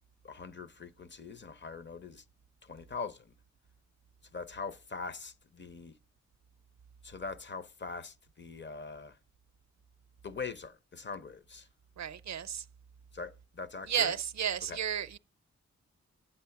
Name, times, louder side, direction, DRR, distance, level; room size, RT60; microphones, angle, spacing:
voice 1, 0.2-2.2 2.6-3.3 4.3-5.9 7.0-9.2 10.2-11.7 13.1-14.2 14.7-14.8, left 4 dB, 40° left, 0.6 m, -42 dB
voice 2, 12.0-12.6 13.9-15.2, right 9 dB, 70° right, 0.5 m, -32 dB
9.1 x 7.5 x 5.7 m
wide cardioid pair, 125°, 29 cm